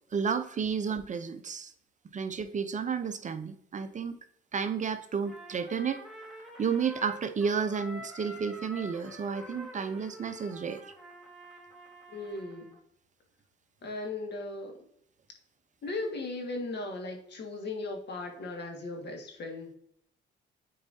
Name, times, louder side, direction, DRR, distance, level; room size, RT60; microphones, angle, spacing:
voice 1, 0.1-1.7 2.1-4.1 4.5-6.0 6.4-10.8, right 6 dB, 40° right, 9 dB, 0.6 m, -32 dB
Trumpet, 5.2-12.8, equal, ahead, 1.8 m, -47 dB
voice 2, 12.1-12.8 13.8-14.7 15.8-19.8, left 2 dB, 60° left, 3 dB, 1.8 m, -37 dB
8.5 x 4.7 x 2.7 m, 0.68 s
cardioid pair, 90°, 20 cm